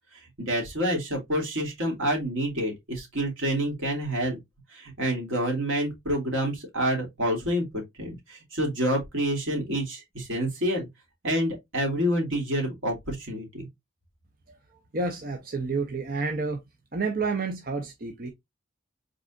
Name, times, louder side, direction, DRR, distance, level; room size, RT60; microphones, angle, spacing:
voice 1, 0.4-4.4 4.7-10.9 11.2-13.7, equal, 85° right, 2.7 m, -28 dB
voice 2, 14.9-16.6 16.9-18.3, right 3 dB, 45° right, 0.8 m, -29 dB
5.1 x 4.1 x 2.4 m
head